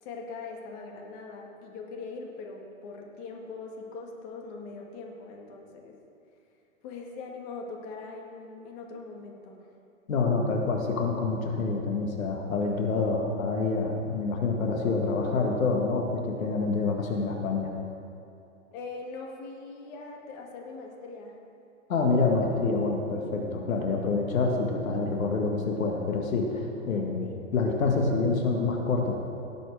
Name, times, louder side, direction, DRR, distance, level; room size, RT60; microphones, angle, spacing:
voice 1, 0.0-6.0 6.8-9.7 18.7-21.4 27.2-27.4, left 4 dB, 40° left, 0 dB, 2.1 m, -41 dB
voice 2, 10.1-17.7 21.9-27.2 27.5-29.2, left 3 dB, 80° left, 1 dB, 2.0 m, -27 dB
18.5 x 7.8 x 4.9 m, 2.5 s
hypercardioid pair, 120°, 40 cm